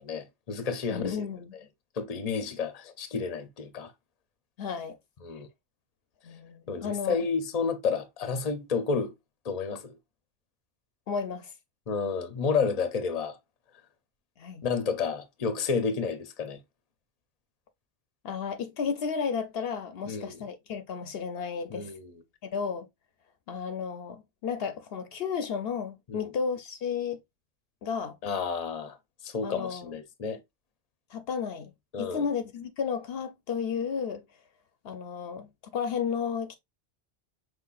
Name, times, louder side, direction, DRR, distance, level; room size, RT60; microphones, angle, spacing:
voice 1, 0.0-1.3 2.0-3.9 5.2-5.5 6.7-9.1 9.4-10.0 11.9-13.4 14.6-16.6 20.1-20.4 21.7-22.2 26.1-26.3 28.2-29.0 29.2-30.4 31.9-32.2, left 5 dB, 40° left, 0.8 m, -31 dB
voice 2, 0.9-1.5 4.6-5.0 6.2-7.2 11.1-11.5 14.4-14.7 18.2-21.9 22.4-22.9 23.5-27.2 27.8-28.2 29.4-29.9 31.1-31.7 32.0-34.2 34.8-35.5 35.7-36.5, left 6 dB, 70° left, 0.8 m, -33 dB
5.7 x 3.1 x 2.4 m
omnidirectional pair, 1.1 m